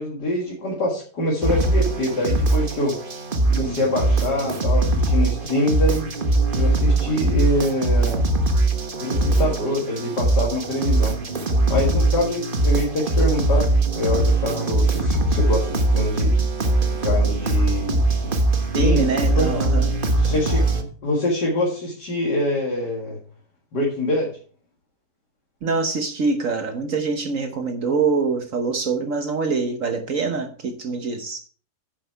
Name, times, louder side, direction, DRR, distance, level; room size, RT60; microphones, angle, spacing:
voice 1, 0.0-3.0 3.5-6.0 6.5-8.3 9.0-11.2 11.7-16.3 17.0-18.3 18.7-19.5 20.2-20.7 21.0-23.2 23.7-24.3, left 1 dB, 75° left, 2.6 m, -25 dB
sound 1, 1.4-20.8, right 2 dB, 35° right, 1.2 m, -21 dB
voice 2, 3.5-3.8 10.8-11.2 18.7-20.0 25.6-31.4, right 4 dB, 55° right, 1.4 m, -25 dB
9.7 x 7.6 x 4.5 m
omnidirectional pair, 1.8 m